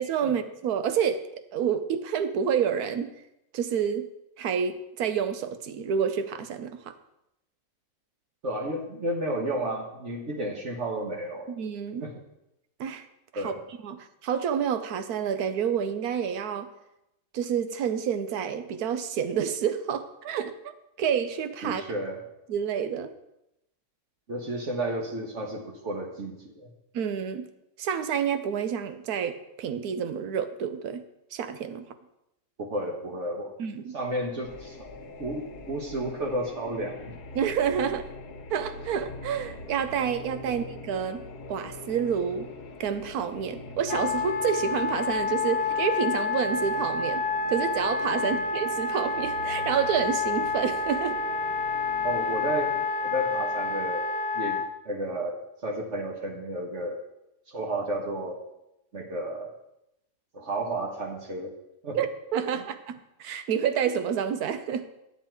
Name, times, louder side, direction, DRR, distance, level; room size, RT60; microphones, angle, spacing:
voice 1, 0.0-3.1 3.5-4.1 4.4-6.9 11.5-12.0 12.8-13.1 13.3-13.5 13.8-16.7 17.3-20.5 21.0-21.8 22.5-23.1 26.9-27.5 27.8-31.0 31.3-31.9 33.6-34.0 37.3-38.0 38.5-41.2 41.5-42.5 42.8-51.2 61.9-64.9, right 8 dB, 75° right, 10 dB, 1.2 m, -29 dB
voice 2, 8.4-11.5 12.0-12.1 13.3-13.6 21.6-22.2 24.3-26.7 32.6-33.5 33.9-34.9 35.2-37.1 37.8-37.9 40.4-40.5 48.2-48.4 52.0-52.7 53.0-54.0 54.3-57.0 57.5-58.4 58.9-59.5 60.3-61.5 61.8-62.0 62.5-62.6, right 1 dB, 50° right, 1 dB, 1.5 m, -32 dB
sound 1, 34.4-52.9, left 2 dB, 85° left, 1.5 m, -44 dB
Wind instrument woodwind instrument, 43.9-54.7, left 4 dB, 60° left, 0.6 m, -29 dB
10.0 x 8.1 x 4.5 m, 0.86 s
omnidirectional pair, 1.6 m